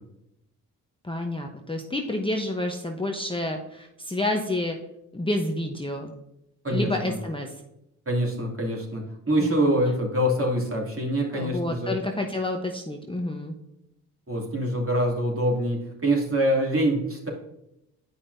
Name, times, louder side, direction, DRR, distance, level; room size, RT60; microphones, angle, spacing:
voice 1, 1.0-4.8 5.1-6.1 6.7-7.5 9.4-9.7 11.3-13.5, left 1 dB, 15° left, 2 dB, 0.9 m, -29 dB
voice 2, 6.6-7.2 8.1-11.9 14.3-17.3, right 1 dB, 30° right, -1 dB, 2.6 m, -25 dB
9.0 x 5.4 x 2.7 m, 0.84 s
hypercardioid pair, 45°, 41 cm